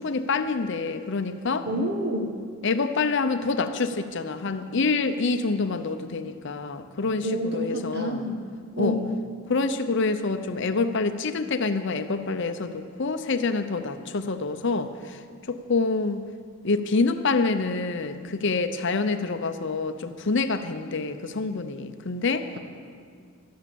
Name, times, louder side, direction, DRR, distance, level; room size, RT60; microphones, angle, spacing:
voice 1, 0.0-1.7 2.6-8.3 8.8-9.0 9.5-16.3 16.6-22.5, left 3 dB, 60° left, 9 dB, 0.7 m, -27 dB
voice 2, 1.7-2.3 7.2-8.4 8.8-9.2, equal, 50° right, 4 dB, 1.4 m, -28 dB
13.0 x 10.5 x 7.0 m, 2.1 s
head